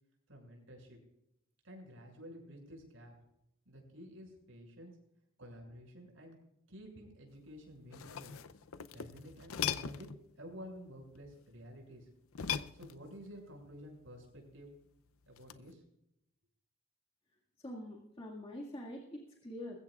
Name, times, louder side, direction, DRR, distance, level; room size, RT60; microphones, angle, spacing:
voice 1, 0.3-1.0 1.6-3.1 3.6-4.9 5.4-6.4 6.7-8.3 8.9-10.1 10.4-12.1 12.7-14.7 15.3-15.8, equal, 70° right, 0 dB, 6.8 m, -51 dB
sound 1, 7.8-10.2 12.3-13.3 15.4-15.7, left 8 dB, 85° left, 0.6 m, -39 dB
voice 2, 17.6-19.8, left 1 dB, 25° left, -2 dB, 2.1 m, -45 dB
21.0 x 15.5 x 2.4 m, 0.82 s
head